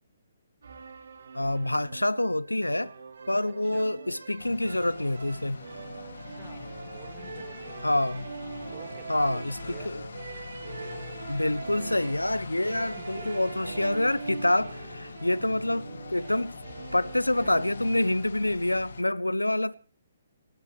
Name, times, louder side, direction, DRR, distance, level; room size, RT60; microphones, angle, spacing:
sound 1, 0.6-18.3, right 4 dB, 60° right, 2.2 m, -42 dB
voice 1, 1.3-2.9 3.3-5.6 7.8-8.3 9.1-10.0 11.3-16.6 16.9-19.7, left 1 dB, 80° left, 0.7 m, -27 dB
sound 2, 4.4-19.0, left 4 dB, 60° left, 1.9 m, -43 dB
voice 2, 6.3-8.0 8.7-10.0 13.0-13.5 15.0-15.1 16.2-16.4 17.4-17.6, right 11 dB, 20° right, 1.7 m, -51 dB
29.0 x 10.5 x 3.2 m
figure-of-eight pair, 130°, 0 cm